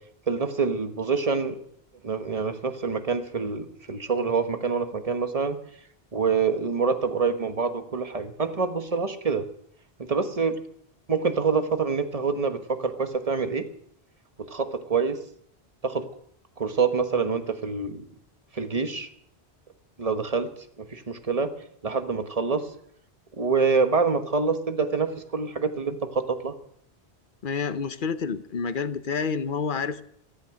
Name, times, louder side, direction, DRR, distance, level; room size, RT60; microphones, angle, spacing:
voice 1, 0.3-1.6 2.0-5.6 6.1-9.4 10.0-10.5 11.1-13.7 14.4-15.2 15.8-16.0 16.6-18.0 18.5-19.1 20.0-20.5 20.8-21.5 21.8-22.7 23.4-26.5, right 5 dB, 35° right, 8 dB, 1.3 m, -26 dB
voice 2, 27.4-30.0, left 5 dB, 50° left, 12 dB, 1.0 m, -28 dB
14.5 x 13.5 x 6.5 m, 0.66 s
omnidirectional pair, 1.1 m